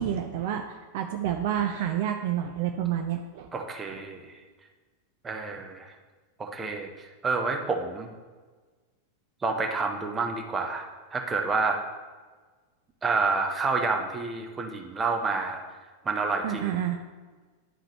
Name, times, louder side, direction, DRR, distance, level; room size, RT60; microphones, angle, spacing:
voice 1, 0.0-3.5 16.4-17.0, right 10 dB, 50° right, 5 dB, 0.4 m, -29 dB
voice 2, 3.5-4.4 5.2-5.9 6.4-8.1 9.4-11.8 13.0-15.6 16.0-16.8, right 4 dB, 20° right, 2 dB, 0.8 m, -29 dB
11.0 x 3.9 x 3.1 m, 1.4 s
figure-of-eight pair, 90°, 0 cm